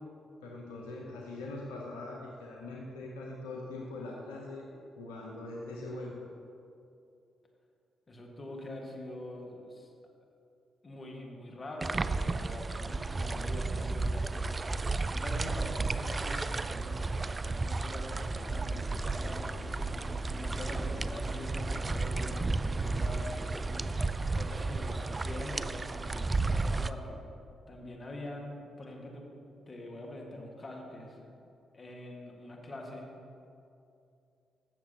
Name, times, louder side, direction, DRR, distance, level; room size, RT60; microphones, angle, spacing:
voice 1, 0.4-4.7 5.0-6.2, left 2 dB, 85° left, -2 dB, 0.8 m, -42 dB
voice 2, 8.1-9.9 10.8-14.6 15.1-19.7 20.3-23.4 24.3-27.2 27.7-29.3 29.7-31.3 31.7-33.2, left 1 dB, 40° left, 0 dB, 1.8 m, -44 dB
sound 1, 11.8-26.9, right 3 dB, 35° right, 0.3 m, -33 dB
sound 2, 18.5-24.0, equal, ahead, 0.8 m, -43 dB
14.5 x 6.9 x 2.9 m, 2.6 s
hypercardioid pair, 45°, 0 cm